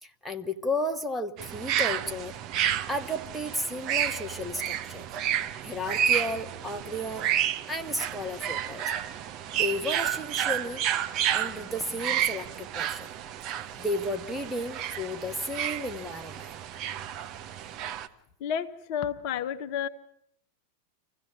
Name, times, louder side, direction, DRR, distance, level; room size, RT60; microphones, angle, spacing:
voice 1, 0.0-2.3 2.9-5.1 5.6-7.3 7.7-8.9 9.5-10.8 11.3-13.1 13.8-16.5, left 1 dB, ahead, 3 dB, 1.2 m, -33 dB
sound 1, 1.4-18.1, right 10 dB, 35° right, 1.0 m, -31 dB
voice 2, 18.4-19.9, left 8 dB, 45° left, 9 dB, 0.9 m, -31 dB
26.0 x 16.0 x 8.4 m, 0.72 s
figure-of-eight pair, 90°, 0 cm